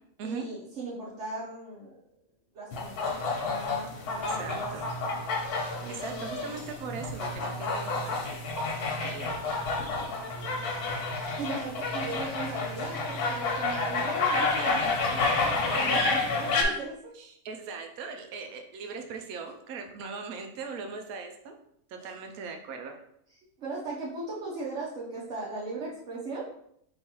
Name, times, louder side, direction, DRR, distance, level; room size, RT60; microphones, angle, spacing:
voice 1, 0.2-2.2 2.5-4.7 5.8-6.2 11.4-17.1 22.0-22.2 23.6-26.5, right 3 dB, 55° right, -6 dB, 1.1 m, -38 dB
sound 1, 2.7-16.6, left 3 dB, 85° left, 1.3 m, -30 dB
voice 2, 4.2-4.9 5.9-8.5 9.0-9.4 14.4-14.9 15.7-16.2 17.2-21.5 21.9-23.0, right 5 dB, 80° right, 5 dB, 1.1 m, -39 dB
4.7 x 3.2 x 2.9 m, 0.72 s
omnidirectional pair, 1.6 m